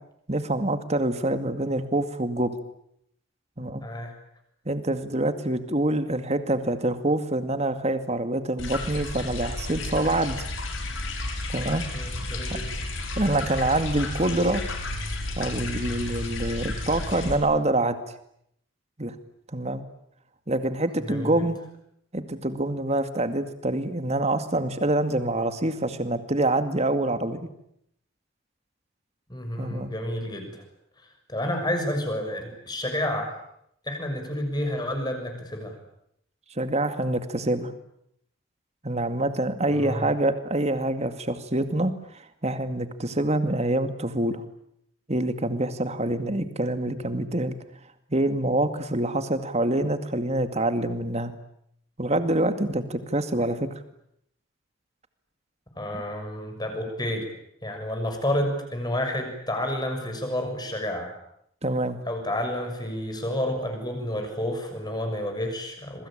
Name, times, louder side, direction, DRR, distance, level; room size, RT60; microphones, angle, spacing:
voice 1, 0.3-2.5 3.6-3.8 4.7-10.5 11.5-11.8 12.5-12.6 13.2-14.6 15.4-18.0 19.0-19.1 19.5-19.8 20.5-21.6 22.1-27.5 29.6-29.9 36.6-37.7 38.8-41.9 42.4-44.4 45.1-47.6 48.1-51.3 52.0-53.7 61.6-62.0, right 1 dB, 30° right, 9 dB, 2.2 m, -26 dB
voice 2, 3.8-4.1 11.9-12.7 21.1-21.4 29.3-30.6 31.3-33.3 33.8-35.7 39.7-40.1 55.8-57.2 57.6-61.1 62.0-66.1, left 1 dB, 20° left, 5 dB, 6.6 m, -30 dB
sound 1, 8.6-17.4, left 2 dB, 70° left, 6.1 m, -32 dB
27.0 x 23.5 x 8.9 m, 0.74 s
head